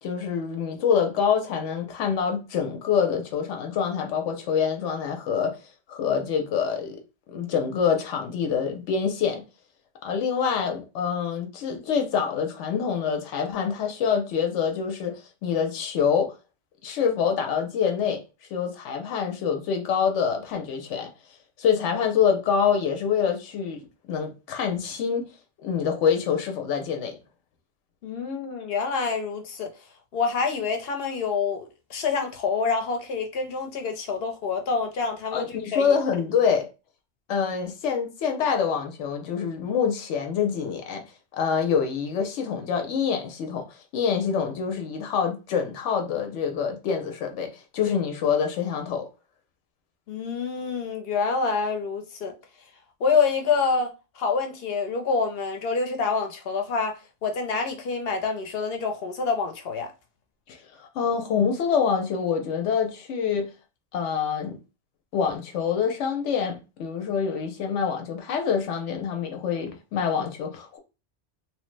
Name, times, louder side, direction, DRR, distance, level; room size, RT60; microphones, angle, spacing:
voice 1, 0.0-5.6 5.9-7.0 7.3-9.4 10.0-16.3 16.8-18.2 18.5-21.1 21.6-25.3 25.6-27.1 35.3-36.7 37.3-41.0 41.3-43.6 43.9-49.1 60.5-63.5 63.9-64.6 65.1-70.8, left 7 dB, 90° left, 0.9 m, -26 dB
voice 2, 28.0-29.7 30.1-35.8 50.1-52.3 53.0-56.9 57.2-59.9, left 5 dB, 60° left, 0.8 m, -27 dB
3.0 x 2.0 x 3.1 m
omnidirectional pair, 1.2 m